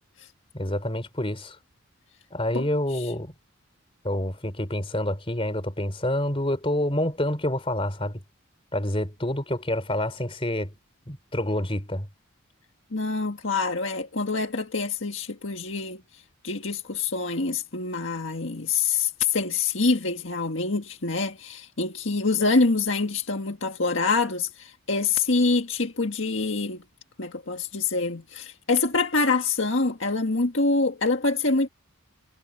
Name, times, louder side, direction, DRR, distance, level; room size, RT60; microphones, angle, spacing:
voice 1, 0.5-1.6 2.3-3.3 4.0-8.2 8.7-10.7 11.1-12.1, left 1 dB, 25° left, 4.2 m, -27 dB
voice 2, 2.5-3.1 12.9-16.0 16.4-26.8 27.2-31.7, left 3 dB, 60° left, 1.8 m, -26 dB
head